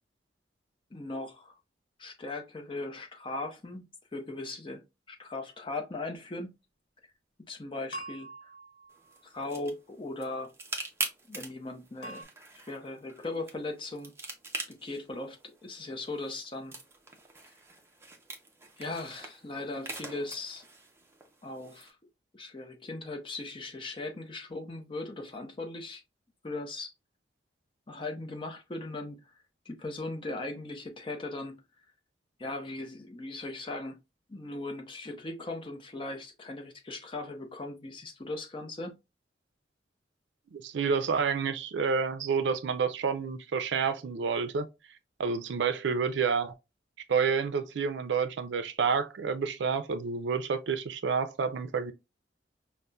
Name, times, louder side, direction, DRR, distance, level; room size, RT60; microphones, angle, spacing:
voice 1, 0.9-1.6 2.0-4.8 5.1-6.5 7.5-8.5 9.2-10.5 11.3-12.3 12.7-14.1 14.7-16.7 18.8-20.6 21.4-22.0 22.3-26.0 26.4-26.9 27.9-29.3 29.7-31.6 32.4-34.0 34.3-39.0, left 2 dB, 30° left, 0.6 m, -38 dB
sound 1, 7.9-9.5 12.0-12.2, right 2 dB, 70° left, 1.0 m, -44 dB
sound 2, 8.9-21.9, right 3 dB, 15° right, 0.5 m, -43 dB
voice 2, 40.5-44.7 45.2-46.5 47.1-51.9, right 5 dB, 85° right, 0.4 m, -29 dB
5.2 x 2.1 x 2.2 m
head